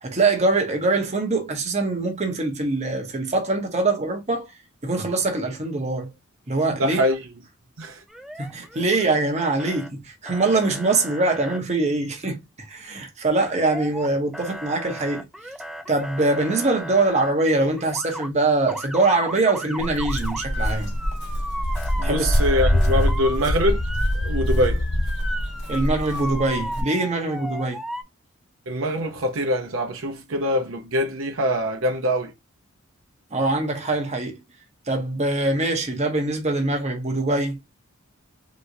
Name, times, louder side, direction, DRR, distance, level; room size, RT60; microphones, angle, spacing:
voice 1, 0.0-4.5 4.8-6.1 6.5-7.1 8.4-12.4 12.7-15.3 15.9-20.9 22.0-22.3 25.7-27.8 33.3-34.3 34.9-37.6, right 2 dB, 35° right, 0.9 m, -23 dB
voice 2, 6.7-7.2 7.8-8.0 22.0-23.8 24.1-24.8 28.7-32.3, equal, 70° right, 0.7 m, -24 dB
Motor vehicle (road) / Siren, 8.1-9.1 9.4-9.9 10.3-11.6 13.4-14.1 14.3-17.3 17.8-18.3 18.7-28.0, equal, ahead, 0.4 m, -35 dB
Walk footsteps, 19.8-26.8, equal, 55° left, 1.2 m, -24 dB
3.4 x 3.0 x 2.7 m
head